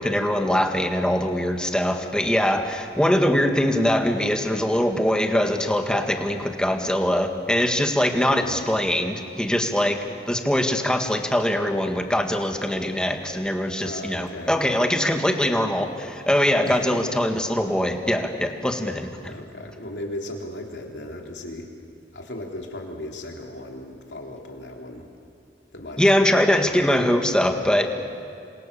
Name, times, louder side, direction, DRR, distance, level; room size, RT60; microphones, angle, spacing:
voice 1, 0.0-10.0 10.3-19.3 26.0-28.1, left 1 dB, 5° left, 5 dB, 1.8 m, -22 dB
voice 2, 8.3-8.6 13.8-14.6 16.6-16.8 19.2-21.7 22.1-25.1 25.7-26.4 26.7-26.8, left 1 dB, 70° left, 1 dB, 3.7 m, -36 dB
27.5 x 26.5 x 7.0 m, 2.7 s
head